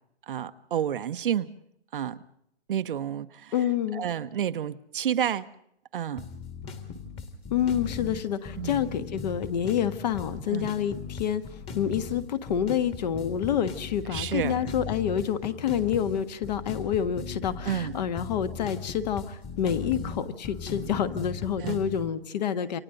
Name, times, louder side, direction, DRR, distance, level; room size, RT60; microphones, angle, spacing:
voice 1, 0.3-1.5 1.9-2.2 2.7-3.5 3.9-5.5 5.9-6.2 8.6-8.8 10.5-10.7 14.1-14.6 17.6-18.0 21.6-21.8, right 9 dB, 50° right, 1.0 m, -30 dB
voice 2, 3.5-4.0 7.5-11.4 11.7-22.8, left 9 dB, 40° left, 1.5 m, -28 dB
sound 1, 6.2-22.1, left 5 dB, 15° left, 1.9 m, -38 dB
28.5 x 25.0 x 3.9 m
hypercardioid pair, 155°, 34 cm